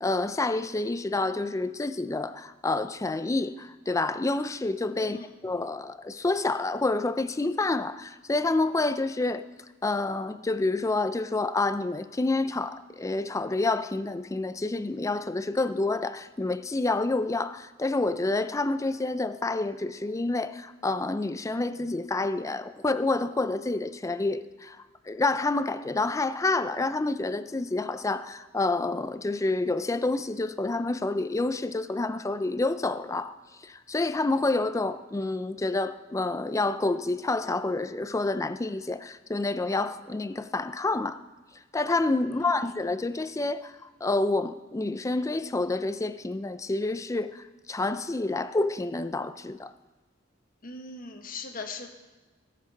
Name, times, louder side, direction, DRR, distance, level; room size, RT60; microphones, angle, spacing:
voice 1, 0.0-9.4 9.8-24.8 25.1-33.3 33.6-41.2 41.7-43.7 44.0-49.7, left 2 dB, 15° left, 0.4 m, -28 dB
voice 2, 5.0-5.3 42.2-42.7 50.6-51.9, left 3 dB, 45° left, 1.2 m, -40 dB
17.0 x 7.3 x 4.1 m
head